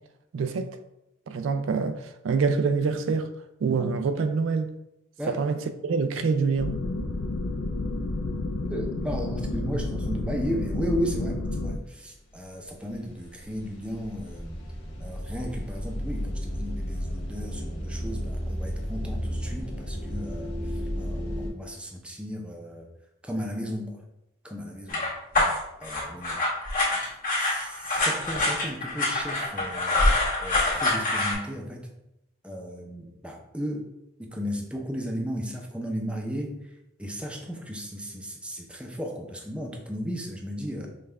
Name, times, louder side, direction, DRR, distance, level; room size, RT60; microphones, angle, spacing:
voice 1, 0.3-0.8 1.3-3.3 3.6-4.7 5.3-6.8, right 5 dB, 75° right, 0.3 m, -26 dB
sound 1, 6.6-11.8, left 2 dB, 75° left, 0.4 m, -30 dB
voice 2, 8.7-14.6 15.0-22.9 23.2-24.0 24.4-25.1 25.8-26.4 26.9-27.0 27.4-30.0 30.4-31.9 32.4-33.8 34.2-36.7 37.0-40.9, equal, 5° right, 0.5 m, -35 dB
sound 2, 12.4-12.7 12.9-21.5, equal, 60° left, 1.0 m, -33 dB
sound 3, 24.9-31.3, left 2 dB, 45° left, 1.4 m, -25 dB
5.4 x 2.3 x 3.3 m
head